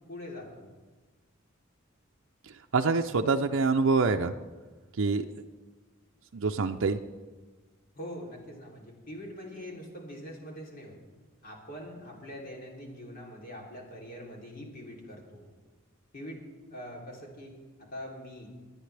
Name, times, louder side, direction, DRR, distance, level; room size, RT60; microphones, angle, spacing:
voice 1, 0.1-0.7 7.9-11.0 11.4-15.4 16.1-16.4 16.7-17.5 17.9-18.5, equal, 45° left, -2 dB, 3.2 m, -43 dB
voice 2, 2.7-4.3 5.0-5.3 6.3-7.0, right 4 dB, 75° right, 5 dB, 0.6 m, -25 dB
28.0 x 9.9 x 3.4 m, 1.3 s
head